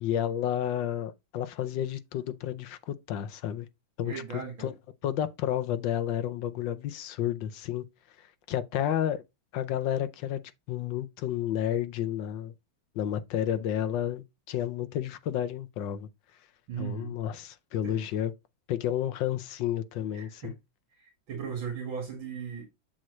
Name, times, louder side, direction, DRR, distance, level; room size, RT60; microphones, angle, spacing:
voice 1, 0.0-3.7 4.0-4.7 5.0-7.8 8.5-9.2 9.5-10.4 10.7-12.5 12.9-16.1 16.8-18.3 18.7-20.5, left 10 dB, 70° left, 1.4 m, -31 dB
voice 2, 4.0-4.7 16.7-17.2 17.8-17.9 20.1-20.5 21.0-22.6, right 6 dB, 75° right, 2.7 m, -37 dB
7.7 x 4.4 x 3.2 m
omnidirectional pair, 2.2 m